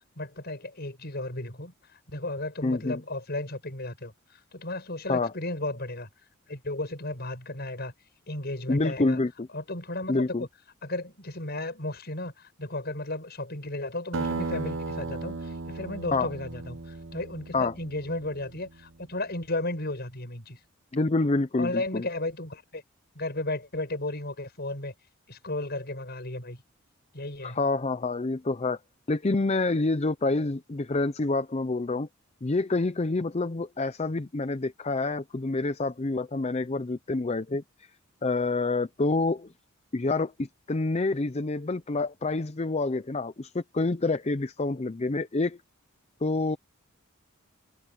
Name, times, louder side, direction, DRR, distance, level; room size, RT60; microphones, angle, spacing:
voice 1, 0.2-6.1 6.5-7.9 8.3-9.2 9.5-10.5 10.8-20.6 21.6-22.8 23.1-24.9 25.3-26.6 27.1-27.6, left 2 dB, 50° left, 6.7 m, -34 dB
voice 2, 2.6-3.0 5.1-5.3 8.7-9.5 10.1-10.4 16.1-16.3 17.5-17.7 20.9-22.0 27.4-28.8 29.1-32.1 32.4-37.6 38.2-39.5 39.9-45.6 46.2-46.6, left 3 dB, 30° left, 0.6 m, -27 dB
Acoustic guitar, 14.1-19.0, right 3 dB, 60° right, 1.0 m, -36 dB
head